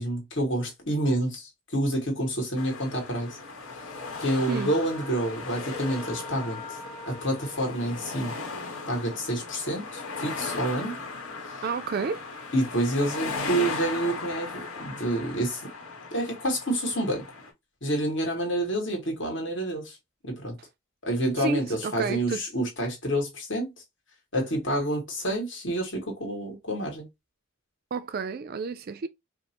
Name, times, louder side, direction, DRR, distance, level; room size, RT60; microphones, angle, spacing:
voice 1, 0.0-3.4 4.2-6.6 7.1-8.3 8.9-10.9 12.5-15.6 16.1-17.2 17.8-20.0 20.2-20.6 21.0-23.7 24.3-27.1, right 1 dB, 55° left, 1.5 m, -28 dB
sound 1, 2.6-17.5, left 4 dB, 75° left, 1.1 m, -37 dB
Wind instrument woodwind instrument, 4.5-8.6, left 2 dB, 20° left, 0.7 m, -45 dB
voice 2, 11.6-12.3 21.4-22.4 27.9-29.1, right 5 dB, 45° right, 0.3 m, -30 dB
5.0 x 2.0 x 2.8 m
head